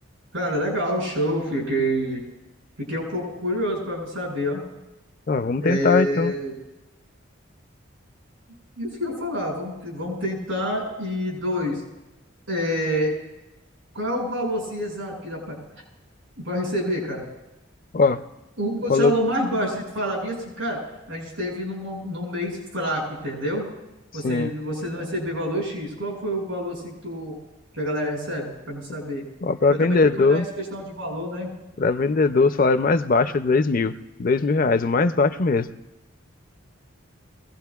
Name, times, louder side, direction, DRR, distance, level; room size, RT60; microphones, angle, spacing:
voice 1, 0.3-2.2 2.9-4.6 5.6-6.5 8.8-11.8 12.5-13.2 13.9-15.6 16.4-17.2 18.6-20.8 21.1-23.7 24.1-27.4 27.7-29.2 29.7-31.5, equal, 85° right, -2 dB, 6.1 m, -27 dB
voice 2, 5.3-6.3 17.9-18.2 18.9-19.1 24.2-24.5 29.4-30.4 31.8-33.9 34.2-35.7, left 3 dB, 45° left, 11 dB, 0.4 m, -20 dB
23.5 x 17.0 x 2.3 m, 0.98 s
head